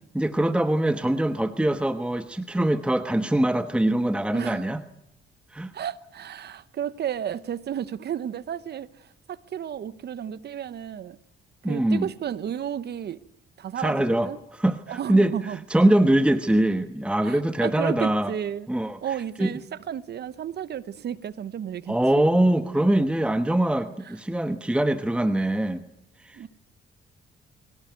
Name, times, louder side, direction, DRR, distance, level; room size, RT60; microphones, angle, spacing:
voice 1, 0.1-4.8 5.5-5.7 11.6-12.1 13.8-15.3 15.7-18.3 18.7-19.0 19.4-19.6 21.9-25.9 26.2-26.5, right 1 dB, 5° right, 1.1 m, -23 dB
voice 2, 4.3-4.7 5.7-11.2 11.7-13.2 13.6-14.4 14.9-15.6 17.2-18.7 19.0-22.2 26.3-26.5, right 9 dB, 55° right, 0.9 m, -33 dB
22.5 x 18.0 x 9.3 m
cardioid pair, 90°, 20 cm